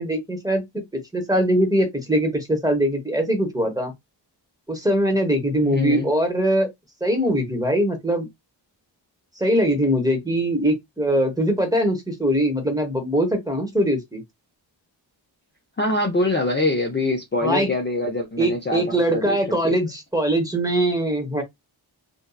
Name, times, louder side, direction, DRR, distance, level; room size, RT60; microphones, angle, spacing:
voice 1, 0.0-3.9 4.7-6.7 7.0-8.3 9.4-14.2 17.4-17.7 18.4-21.4, right 1 dB, 10° right, 1.1 m, -22 dB
voice 2, 5.6-6.1 15.8-19.4 19.6-19.7, left 2 dB, 25° left, 0.6 m, -24 dB
2.7 x 2.3 x 2.3 m
cardioid pair, 60°, 46 cm